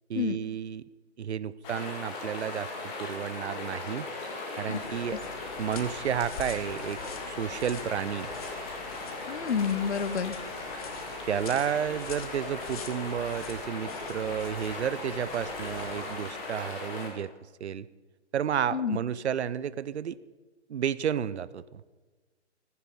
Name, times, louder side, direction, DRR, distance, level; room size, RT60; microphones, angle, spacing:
voice 1, 0.1-0.8 1.2-4.1 4.6-5.2 5.6-7.0 7.3-8.3 11.3-17.3 17.6-17.9 18.3-20.2 20.7-22.0, right 8 dB, 70° right, 17 dB, 0.7 m, -31 dB
sound 1, 1.6-17.1, left 2 dB, 15° left, 2.3 m, -38 dB
sound 2, 4.6-16.5, left 6 dB, 30° left, 1.4 m, -46 dB
voice 2, 9.3-10.4 18.7-19.0, left 7 dB, 70° left, 16 dB, 1.0 m, -29 dB
16.0 x 14.0 x 5.3 m, 1.3 s
hypercardioid pair, 160°, 35 cm